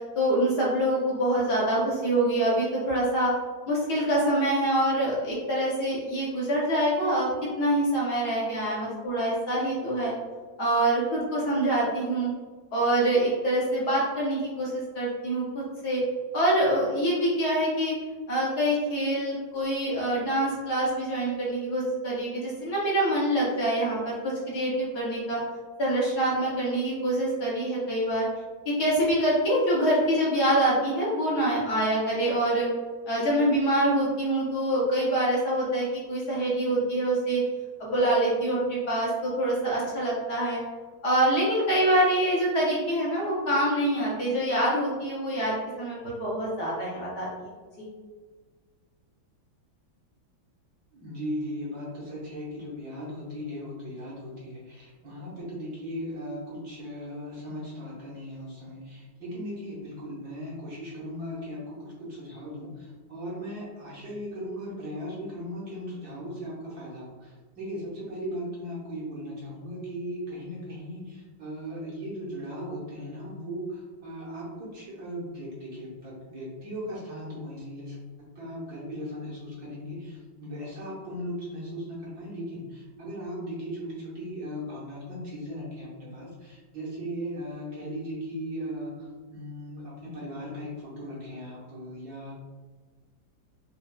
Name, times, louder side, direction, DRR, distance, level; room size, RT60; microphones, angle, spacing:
voice 1, 0.1-3.3 3.7-7.3 7.6-10.1 10.6-12.3 12.7-16.0 16.3-17.9 18.3-25.4 25.8-28.2 28.7-32.7 33.1-37.4 37.8-40.6 41.0-47.3 47.8-47.9, right 1 dB, 60° left, -6 dB, 1.3 m, -25 dB
voice 2, 50.9-78.0 78.3-92.3, equal, 60° right, -6 dB, 1.3 m, -37 dB
5.6 x 2.3 x 2.2 m, 1.4 s
omnidirectional pair, 2.2 m